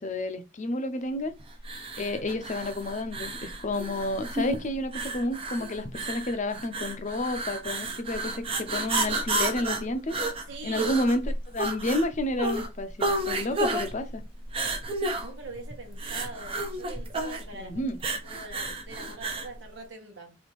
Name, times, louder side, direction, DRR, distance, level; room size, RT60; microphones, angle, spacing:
voice 1, 0.0-1.3 2.0-10.2 10.6-14.2 17.5-18.0, left 1 dB, 40° left, 0.6 m, -30 dB
sound 1, 1.6-19.5, right 2 dB, 30° right, 0.7 m, -32 dB
voice 2, 10.5-10.9 13.3-13.9 15.1-17.8 18.1-20.3, right 3 dB, 85° right, 1.3 m, -43 dB
4.1 x 2.7 x 3.1 m
head